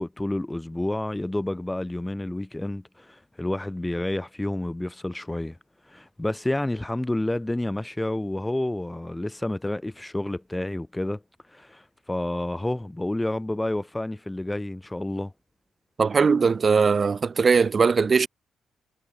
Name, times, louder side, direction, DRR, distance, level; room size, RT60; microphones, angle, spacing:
voice 1, 0.0-5.6 5.9-11.2 11.5-15.3, left 1 dB, 10° left, 0.6 m, -29 dB
voice 2, 16.0-18.3, right 5 dB, 40° right, 0.7 m, -20 dB
cardioid pair, 110°, 0 cm